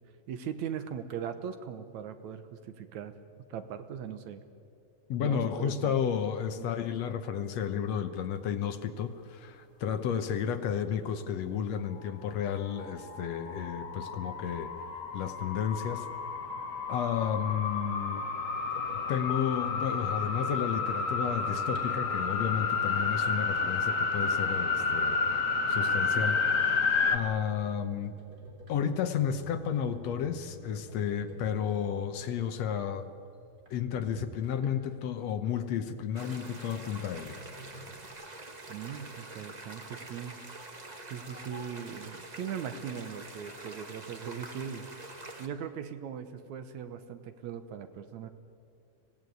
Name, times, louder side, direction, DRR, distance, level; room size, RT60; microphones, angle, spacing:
voice 1, 0.3-3.1 3.5-4.4 5.2-6.1 6.6-6.7 38.7-40.3 41.1-44.9 45.4-48.3, right 8 dB, 75° right, 10 dB, 2.5 m, -39 dB
voice 2, 5.1-14.7 15.1-16.1 16.9-18.3 19.1-25.2 25.7-26.4 27.1-28.2 28.7-33.1 33.7-37.4, left 8 dB, 70° left, 9 dB, 2.1 m, -32 dB
sound 1, 12.7-27.2, left 4 dB, 45° left, 1.0 m, -31 dB
sound 2, 18.7-35.1 36.2-38.1, equal, 30° right, 3.7 m, -50 dB
sound 3, 36.1-45.5, right 2 dB, 60° right, 0.4 m, -46 dB
24.5 x 17.5 x 9.4 m, 2.4 s
omnidirectional pair, 3.3 m